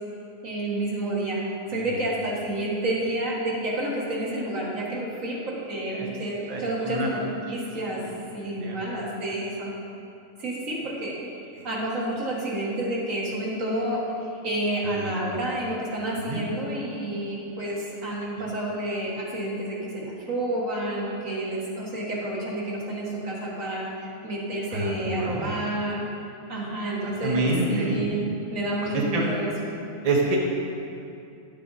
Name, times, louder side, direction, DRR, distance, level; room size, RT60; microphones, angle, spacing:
voice 1, 0.4-8.0 8.3-9.7 10.4-11.2 11.6-26.0 26.5-28.2 28.5-29.7, right 1 dB, 65° right, -4 dB, 1.9 m, -29 dB
voice 2, 6.5-7.1 8.0-8.1 8.6-9.1 11.5-11.6 15.0-15.3 16.2-16.4 24.7-25.5 27.2-28.1 28.9-29.2 30.0-30.4, right 2 dB, 30° right, -2 dB, 1.0 m, -27 dB
10.5 x 6.7 x 4.0 m, 2.6 s
omnidirectional pair, 1.5 m